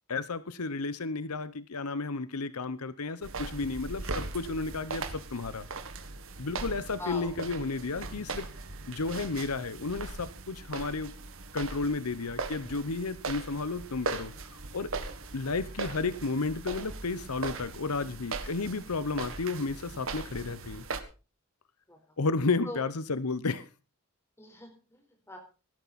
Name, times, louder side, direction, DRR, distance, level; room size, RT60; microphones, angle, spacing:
voice 1, 0.1-5.7 6.4-8.5 8.9-11.1 11.5-14.3 14.7-14.9 15.3-20.8 22.2-23.6, left 3 dB, 90° left, 0.9 m, -32 dB
sound 1, 3.2-21.0, right 3 dB, 65° right, 1.7 m, -39 dB
voice 2, 7.0-7.3 21.9-22.0 22.6-22.8 24.4-25.4, left 1 dB, 10° left, 4.4 m, -41 dB
17.5 x 12.5 x 4.2 m
head